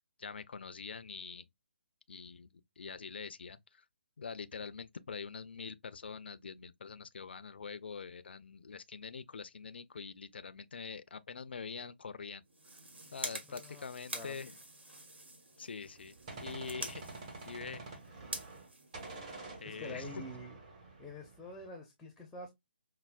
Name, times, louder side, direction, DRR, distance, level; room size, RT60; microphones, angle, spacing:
voice 1, 0.2-1.4 2.1-2.5 2.8-3.8 4.2-12.4 13.1-14.6 15.6-17.0 17.5-17.8 19.6-20.2, left 5 dB, 70° left, 0.4 m, -45 dB
sound 1, 12.4-19.7, right 1 dB, 80° right, 1.4 m, -47 dB
voice 2, 13.5-14.4 19.6-20.6 21.0-22.5, left 2 dB, 5° left, 0.5 m, -47 dB
Gunshot gunfire, 15.8-18.7 18.9-21.7, right 3 dB, 35° right, 1.4 m, -48 dB
5.3 x 2.0 x 2.3 m
figure-of-eight pair, 150°, 6 cm